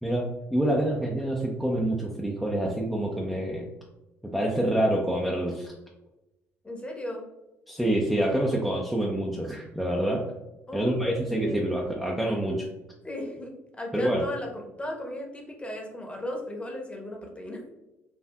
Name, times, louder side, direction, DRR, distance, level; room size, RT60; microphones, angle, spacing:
voice 1, 0.0-3.7 4.3-5.7 7.7-10.2 10.7-12.7 13.9-14.2, right 1 dB, ahead, -3 dB, 0.6 m, -27 dB
voice 2, 6.6-7.2 10.7-11.7 13.0-17.7, left 1 dB, 15° left, 1 dB, 1.0 m, -36 dB
4.5 x 2.5 x 2.3 m, 0.99 s
hypercardioid pair, 50°, 7 cm